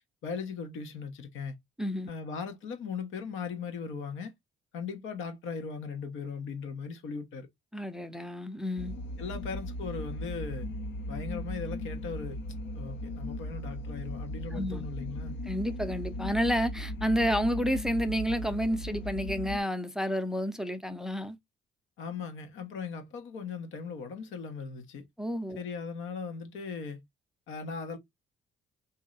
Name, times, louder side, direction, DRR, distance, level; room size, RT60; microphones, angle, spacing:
voice 1, 0.2-1.5 2.1-4.3 4.7-7.5 9.2-10.7 11.1-12.4 12.7-15.4 22.0-25.0 25.5-27.0 27.5-28.0, left 5 dB, 85° left, 1.0 m, -38 dB
voice 2, 1.8-2.1 7.7-8.9 14.5-14.9 15.5-21.4 25.2-25.6, equal, 5° right, 0.5 m, -30 dB
sound 1, 8.8-19.6, left 1 dB, 60° left, 0.6 m, -37 dB
3.1 x 2.7 x 3.8 m
cardioid pair, 90°, 20 cm